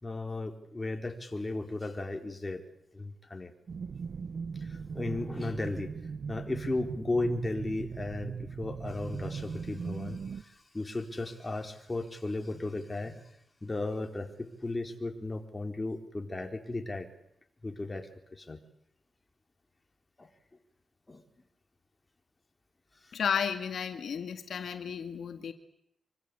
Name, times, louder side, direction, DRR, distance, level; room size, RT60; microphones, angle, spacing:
voice 1, 0.0-2.6 2.9-3.5 4.6-5.9 6.3-13.2 13.6-17.1 17.6-18.6 20.2-20.3 21.1-21.2, left 2 dB, 20° left, 4 dB, 4.2 m, -35 dB
sound 1, 3.7-10.4, right 5 dB, 60° right, 1.1 m, -39 dB
voice 2, 23.1-25.5, left 7 dB, 80° left, 7 dB, 2.0 m, -33 dB
26.0 x 25.0 x 8.6 m, 0.76 s
cardioid pair, 90°, 0 cm